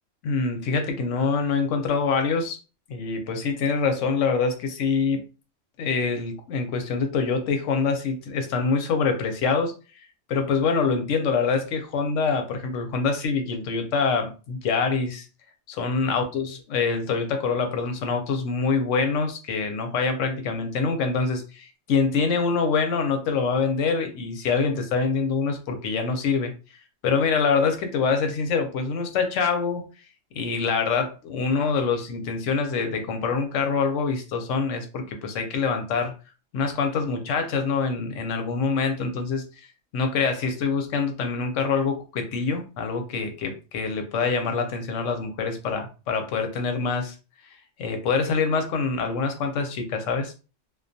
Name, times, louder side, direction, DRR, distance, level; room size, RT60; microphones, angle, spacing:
voice 1, 0.2-2.6 2.9-5.2 5.8-9.7 10.3-15.3 15.7-26.5 27.0-29.8 30.4-36.1 36.5-39.7 39.9-47.1 47.8-50.3, left 5 dB, 85° left, 5 dB, 0.9 m, -25 dB
2.2 x 2.2 x 2.6 m, 0.33 s
omnidirectional pair, 1.3 m